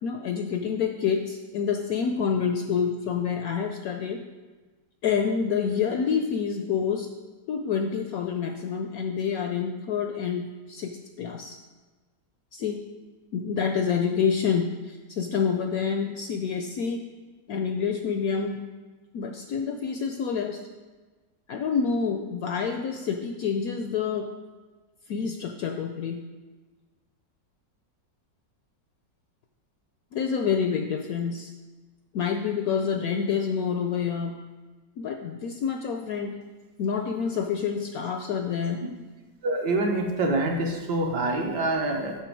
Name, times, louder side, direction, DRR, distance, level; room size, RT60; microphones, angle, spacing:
voice 1, 0.0-4.2 5.0-7.1 7.5-11.6 12.5-12.8 13.3-17.0 17.5-18.6 19.1-20.6 21.5-24.3 25.1-26.2 30.1-31.5 32.1-34.4 35.0-36.4 36.8-38.8, left 6 dB, 75° left, 4 dB, 0.8 m, -27 dB
voice 2, 39.4-42.2, right 2 dB, 70° right, 1 dB, 1.6 m, -26 dB
6.9 x 6.1 x 4.6 m, 1.3 s
omnidirectional pair, 1.9 m